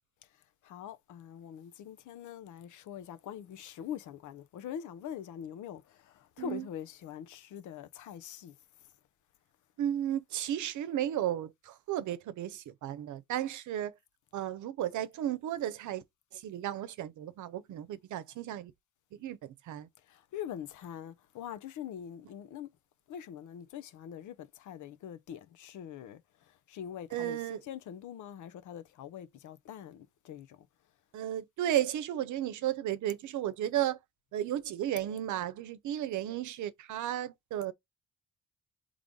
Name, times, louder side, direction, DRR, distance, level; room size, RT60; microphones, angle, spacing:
voice 1, 0.6-8.5 20.1-22.7 23.1-26.2 26.7-30.6, left 9 dB, 75° left, 0.8 m, -43 dB
voice 2, 9.8-13.9 14.3-16.0 16.3-18.7 19.2-19.9 27.1-27.6 31.1-34.0 34.3-37.7, right 12 dB, 75° right, 0.7 m, -34 dB
3.9 x 3.2 x 3.6 m
cardioid pair, 90°, 30 cm